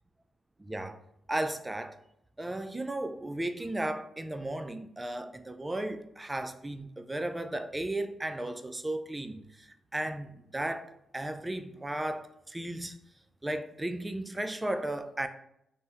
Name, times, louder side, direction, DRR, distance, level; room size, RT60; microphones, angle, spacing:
voice 1, 0.6-1.0 1.3-1.9 2.4-9.7 9.9-13.0 13.4-15.3, right 1 dB, 20° right, 0.3 m, -35 dB
3.3 x 2.1 x 2.8 m
supercardioid pair, 55°, 0 cm